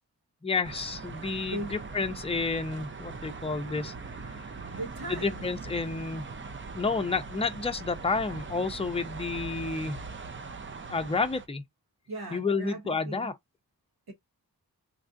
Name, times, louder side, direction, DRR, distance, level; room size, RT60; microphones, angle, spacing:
voice 1, 0.4-3.9 5.1-6.3 6.7-10.0 10.9-11.6 12.3-13.3, left 4 dB, 15° left, 0.6 m, -30 dB
sound 1, 0.6-11.5, right 4 dB, 30° right, 0.6 m, -41 dB
voice 2, 1.4-1.8 4.7-5.5 12.1-13.3 14.1-14.2, right 1 dB, 80° right, 1.2 m, -38 dB
3.2 x 2.5 x 2.5 m
cardioid pair, 45°, 38 cm